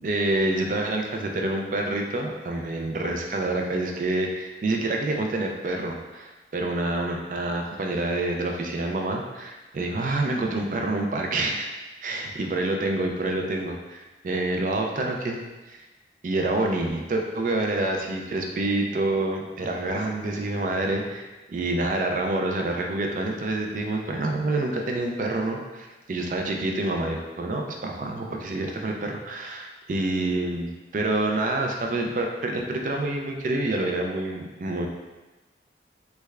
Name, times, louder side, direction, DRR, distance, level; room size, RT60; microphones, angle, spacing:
voice 1, 0.0-11.7 12.0-15.4 15.7-15.8 16.2-34.9, right 2 dB, 45° right, 2 dB, 0.3 m, -27 dB
3.3 x 3.1 x 2.3 m, 1.2 s
head